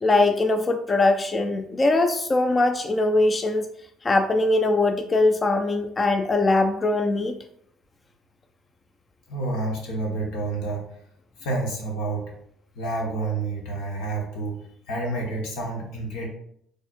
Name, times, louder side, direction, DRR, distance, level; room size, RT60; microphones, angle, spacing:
voice 1, 0.0-3.7 4.0-7.3, left 2 dB, 30° left, 7 dB, 0.3 m, -21 dB
voice 2, 9.3-10.9 11.4-12.3 12.7-14.5 14.9-16.3, right 2 dB, 85° left, -1 dB, 1.2 m, -29 dB
4.3 x 3.4 x 2.4 m, 0.69 s
supercardioid pair, 75°, 0 cm